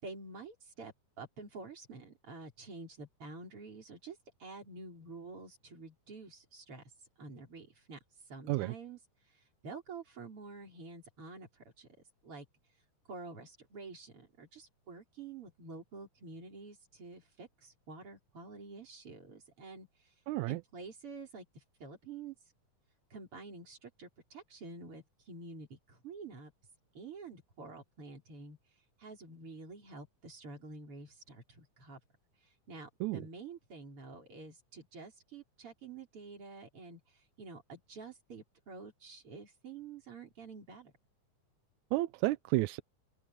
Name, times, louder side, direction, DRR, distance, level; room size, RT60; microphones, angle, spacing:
voice 1, 0.0-6.8 7.2-8.0 8.3-9.0 9.6-11.9 12.2-12.5 13.1-19.9 20.5-22.4 23.1-26.5 26.9-28.6 29.0-32.0 32.7-40.9, right 3 dB, 40° right, 5.4 m, -49 dB
voice 2, 20.3-20.6 33.0-33.2 41.9-42.8, right 19 dB, 80° right, 1.8 m, -31 dB
open air
omnidirectional pair, 3.7 m